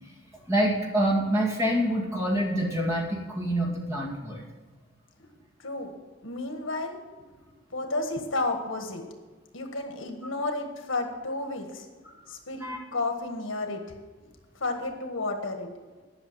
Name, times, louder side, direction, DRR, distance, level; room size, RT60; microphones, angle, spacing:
voice 1, 0.5-4.4 12.0-12.1 12.6-12.8, right 1 dB, 15° right, -2 dB, 2.1 m, -26 dB
voice 2, 6.2-7.0 7.7-9.0 9.5-11.9 12.3-13.8 14.6-15.7, left 2 dB, 70° left, 4 dB, 1.6 m, -32 dB
11.5 x 6.1 x 7.4 m, 1.3 s
head